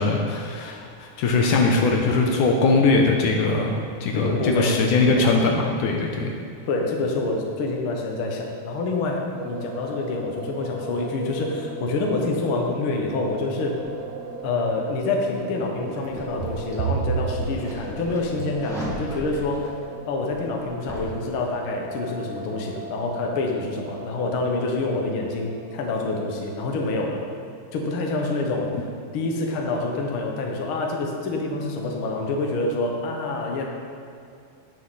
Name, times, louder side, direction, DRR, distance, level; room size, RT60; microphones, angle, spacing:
voice 1, 0.0-6.3, left 3 dB, 75° left, 1 dB, 2.2 m, -21 dB
voice 2, 4.1-4.7 6.7-13.8 14.4-19.7 20.1-27.2 27.7-28.8 29.1-33.6, left 3 dB, 55° left, 0 dB, 1.5 m, -27 dB
sound 1, 9.3-26.6, right 1 dB, 60° right, 2.3 m, -38 dB
sound 2, 15.6-19.1 20.4-20.7 21.1-21.4, right 6 dB, 85° right, 1.6 m, -31 dB
sound 3, 15.9-21.1, left 1 dB, ahead, 1.2 m, -38 dB
17.0 x 6.9 x 4.2 m, 2.5 s
omnidirectional pair, 4.0 m